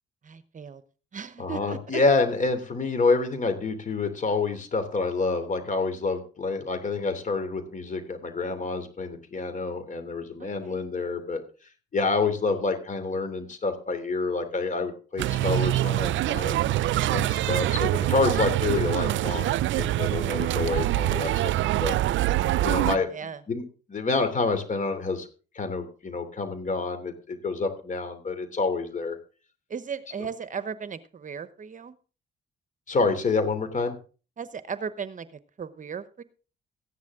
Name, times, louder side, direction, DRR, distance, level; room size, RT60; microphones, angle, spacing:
voice 1, 0.2-0.8 1.1-2.0 10.4-10.9 22.7-23.4 29.7-32.0 34.4-36.2, right 6 dB, 40° right, 13 dB, 1.0 m, -37 dB
voice 2, 1.4-11.4 11.9-22.0 22.6-23.1 23.5-25.3 25.5-29.2 32.9-33.9, left 3 dB, 40° left, 8 dB, 3.1 m, -28 dB
sound 1, 15.2-23.0, right 14 dB, 75° right, 0.5 m, -25 dB
15.0 x 10.5 x 3.7 m, 0.36 s
cardioid pair, 90°, 20 cm